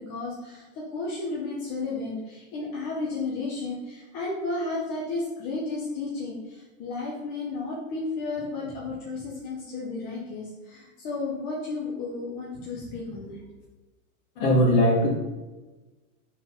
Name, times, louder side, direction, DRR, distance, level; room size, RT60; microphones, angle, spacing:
voice 1, 0.0-13.4, left 3 dB, 20° left, -5 dB, 0.7 m, -33 dB
voice 2, 14.3-15.1, equal, 35° left, -1 dB, 1.5 m, -19 dB
4.5 x 3.9 x 5.6 m, 1.2 s
supercardioid pair, 170°, 43 cm